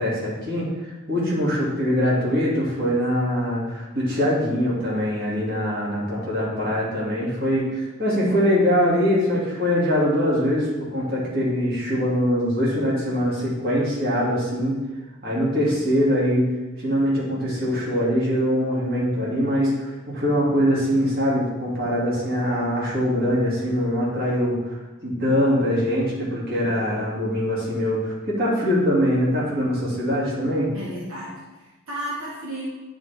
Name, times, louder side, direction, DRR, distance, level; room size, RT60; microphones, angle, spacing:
voice 1, 0.0-14.7 15.2-16.5 16.8-24.8 25.0-30.7, equal, 45° right, -6 dB, 2.3 m, -23 dB
voice 2, 30.7-32.6, right 1 dB, 75° right, -6 dB, 1.5 m, -33 dB
9.1 x 4.3 x 3.4 m, 1.1 s
head